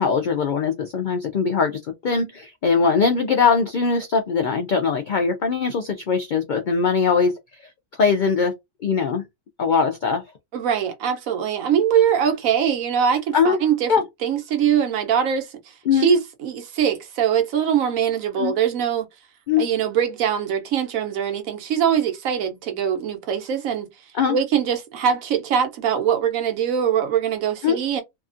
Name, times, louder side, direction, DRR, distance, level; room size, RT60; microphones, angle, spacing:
voice 1, 0.0-9.2 9.6-10.2 13.3-13.6 13.9-14.0 15.9-16.1 18.4-18.5 19.5-19.7 24.1-24.4 27.6-27.8, left 5 dB, 90° left, 0.4 m, -21 dB
voice 2, 10.5-13.9 14.2-19.1 19.6-23.9 24.3-28.0, right 8 dB, 85° right, 1.1 m, -22 dB
2.8 x 2.4 x 2.5 m
omnidirectional pair, 1.4 m